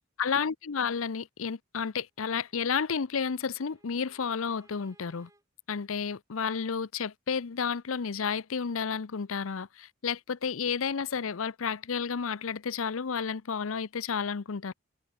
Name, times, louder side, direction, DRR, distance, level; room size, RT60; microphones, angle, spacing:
voice 1, 0.2-5.3 5.7-14.7, left 6 dB, 85° left, 0.6 m, -31 dB
Bowed string instrument, 2.3-5.4, right 1 dB, 15° right, 2.1 m, -65 dB
head